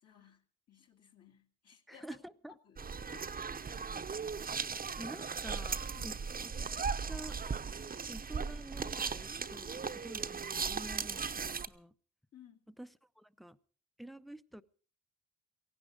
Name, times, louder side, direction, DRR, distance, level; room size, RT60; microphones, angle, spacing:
voice 1, 0.0-2.2 2.6-3.3 5.9-6.2 12.3-12.6, left 9 dB, 55° left, 1 dB, 2.3 m, -60 dB
voice 2, 1.9-2.5 5.0-7.4 8.1-11.9 12.8-12.9 13.2-13.6 14.0-14.6, right 1 dB, ahead, 12 dB, 0.7 m, -49 dB
sound 1, 2.8-11.7, right 5 dB, 30° right, 0.9 m, -38 dB
17.5 x 15.5 x 4.9 m, 0.42 s
cardioid pair, 90°, 30 cm